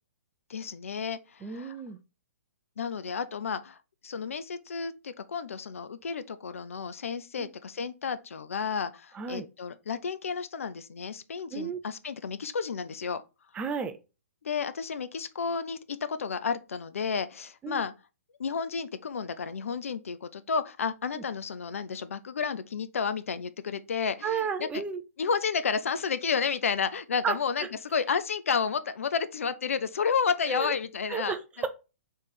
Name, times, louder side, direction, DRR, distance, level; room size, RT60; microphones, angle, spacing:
voice 1, 0.5-1.8 2.8-13.2 14.4-17.9 18.4-24.8 25.2-31.4, left 6 dB, 70° left, 0.5 m, -31 dB
voice 2, 1.4-2.0 7.4-7.5 9.1-9.5 11.5-11.8 13.5-14.0 17.6-17.8 21.1-21.2 24.2-25.0 27.2-27.3 27.6-27.7 30.5-30.7 31.1-31.7, right 6 dB, 15° right, 0.5 m, -32 dB
3.3 x 3.3 x 4.3 m
figure-of-eight pair, 125°, 8 cm